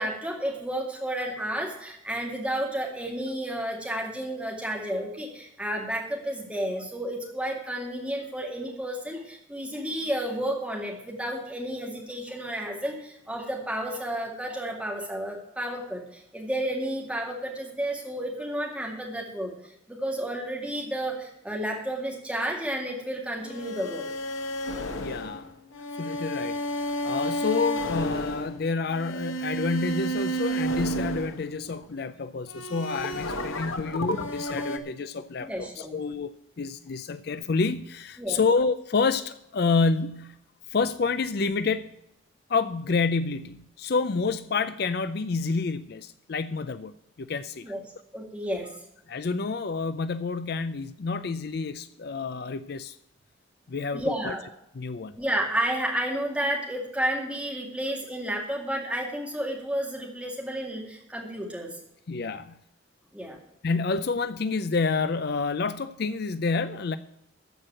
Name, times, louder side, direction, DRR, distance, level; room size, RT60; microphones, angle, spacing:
voice 1, 0.0-24.0 35.5-35.9 38.2-38.4 47.6-47.8 48.1-48.7 53.9-54.4 55.2-61.8 63.1-63.4, right 1 dB, 5° right, 2.3 m, -31 dB
sound 1, 23.4-31.9 32.5-34.8, equal, 90° left, 1.2 m, -31 dB
voice 2, 25.0-25.5 26.0-26.6 27.0-40.4 40.7-41.9 42.5-47.7 49.1-53.0 53.7-54.3 54.8-55.2 62.1-62.6 63.6-67.0, left 4 dB, 50° left, 0.4 m, -28 dB
14.0 x 4.7 x 8.7 m
head